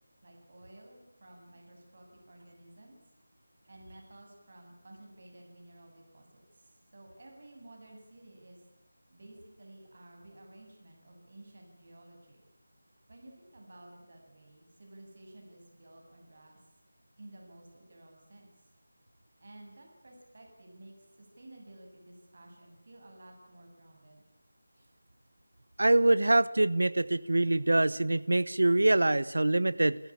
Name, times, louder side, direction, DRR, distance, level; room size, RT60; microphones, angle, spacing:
voice 1, 0.2-3.0 3.7-8.6 9.1-12.5 13.1-16.6 17.2-18.7 19.4-24.2, right 1 dB, 50° right, 1 dB, 7.7 m, -54 dB
voice 2, 25.8-30.0, right 2 dB, 80° right, 19 dB, 1.1 m, -24 dB
29.5 x 15.5 x 8.9 m, 0.94 s
figure-of-eight pair, 175°, 0 cm